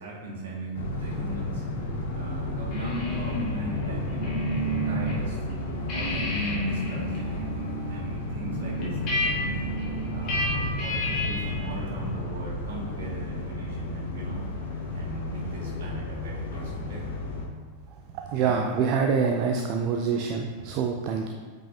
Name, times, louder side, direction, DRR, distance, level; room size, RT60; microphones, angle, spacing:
voice 1, 0.0-1.6 2.1-4.4 4.8-9.7 10.1-14.4 14.9-17.0, right 2 dB, 60° right, -4 dB, 1.9 m, -39 dB
sound 1, 0.7-17.5, left 2 dB, 60° left, 1.2 m, -32 dB
sound 2, 2.7-5.2 5.5-11.7, equal, 40° left, 1.9 m, -31 dB
voice 2, 18.2-21.3, right 6 dB, 40° right, 3 dB, 0.5 m, -25 dB
8.5 x 5.5 x 2.7 m, 1.5 s
figure-of-eight pair, 90°, 0 cm